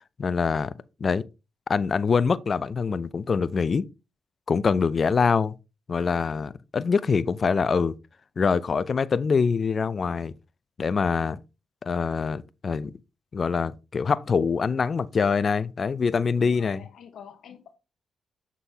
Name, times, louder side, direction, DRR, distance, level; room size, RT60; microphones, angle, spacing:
voice 1, 0.2-0.7 1.0-1.2 1.7-3.9 4.5-5.6 5.9-7.9 8.4-10.3 10.8-11.4 11.8-12.9 13.3-16.9, left 5 dB, 50° left, 0.5 m, -24 dB
voice 2, 16.3-17.8, left 7 dB, 75° left, 0.8 m, -46 dB
7.1 x 6.0 x 2.8 m
supercardioid pair, 50°, 0 cm